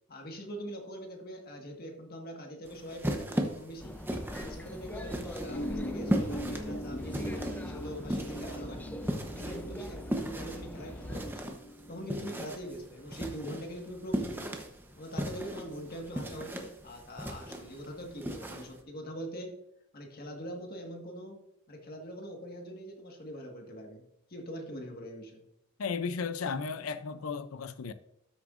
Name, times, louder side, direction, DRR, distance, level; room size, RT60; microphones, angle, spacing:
voice 1, 0.1-4.0 4.4-9.0 9.3-11.5 11.9-14.6 15.0-19.6 19.9-21.4 21.7-24.0 24.3-25.4, equal, 45° left, 1.6 m, -43 dB
sound 1, 2.6-18.8, equal, 10° right, 0.8 m, -37 dB
sound 2, 3.8-11.3, left 1 dB, 10° left, 0.5 m, -43 dB
sound 3, 5.5-12.5, equal, 65° left, 2.2 m, -40 dB
voice 2, 25.8-27.9, left 5 dB, 85° left, 0.5 m, -34 dB
12.5 x 6.9 x 2.5 m
head